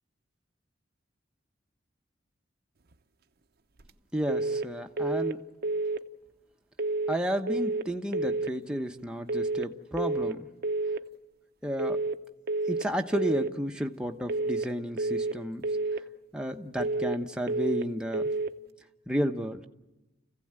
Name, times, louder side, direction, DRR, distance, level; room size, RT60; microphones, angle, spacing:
voice 1, 4.1-5.4 7.1-10.5 11.6-12.0 12.7-15.7 16.3-18.3 19.1-19.6, equal, 5° right, 3 dB, 1.0 m, -32 dB
sound 1, 4.3-4.7 5.0-5.4 5.6-6.0 6.8-7.2 7.5-7.9 8.1-8.5 9.3-9.7 10.0-10.4 10.6-11.0 11.8-12.2 12.5-12.9 13.1-13.5 14.3-14.7 15.0-15.4 15.6-16.0 16.8-17.2 17.5-17.9 18.1-18.5, right 3 dB, 55° right, 0.8 m, -29 dB
29.5 x 16.0 x 8.9 m, 1.1 s
head